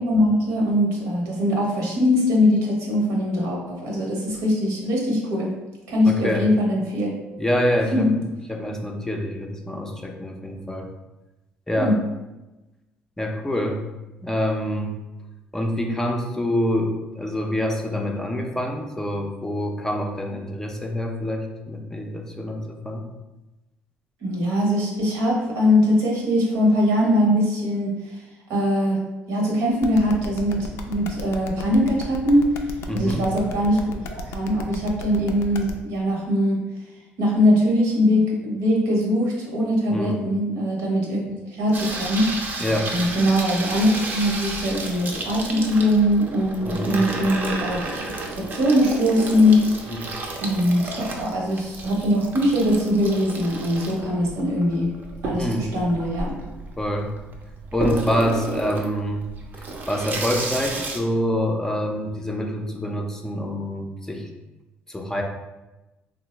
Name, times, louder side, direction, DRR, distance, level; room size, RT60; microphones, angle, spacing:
voice 1, 0.0-5.5 5.9-7.1 7.9-8.1 11.8-11.9 24.2-27.9 28.5-32.5 32.9-36.6 37.2-42.6 42.9-47.9 48.3-50.1 50.4-54.9 55.2-56.3, left 1 dB, 80° right, -2 dB, 0.9 m, -21 dB
voice 2, 6.1-6.5 7.4-8.1 8.5-10.9 11.7-12.0 13.2-13.8 14.2-15.0 15.5-23.1 32.9-33.3 39.9-40.2 42.6-42.9 46.6-47.0 49.9-50.0 55.4-55.7 56.8-57.1 57.7-59.3 59.6-64.3 64.9-65.2, equal, 10° left, 2 dB, 0.4 m, -26 dB
sound 1, 29.8-35.7, left 3 dB, 75° left, 0.3 m, -35 dB
Water tap faucet / Sink (filling or washing), 41.7-61.0, right 2 dB, 45° right, 0.5 m, -32 dB
3.5 x 2.0 x 2.9 m, 1.1 s
cardioid pair, 95°, 4 cm